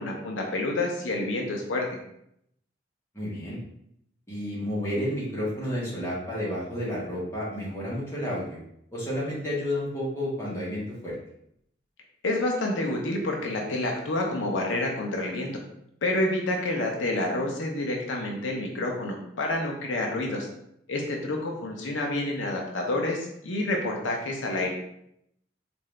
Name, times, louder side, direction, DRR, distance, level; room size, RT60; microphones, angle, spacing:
voice 1, 0.0-1.9 12.2-15.5 16.0-20.5 20.9-24.7, left 2 dB, 80° left, 0 dB, 0.7 m, -28 dB
voice 2, 3.1-3.6 4.3-8.6 8.9-11.2, left 1 dB, 15° left, -8 dB, 1.2 m, -31 dB
3.8 x 2.6 x 3.2 m, 0.74 s
head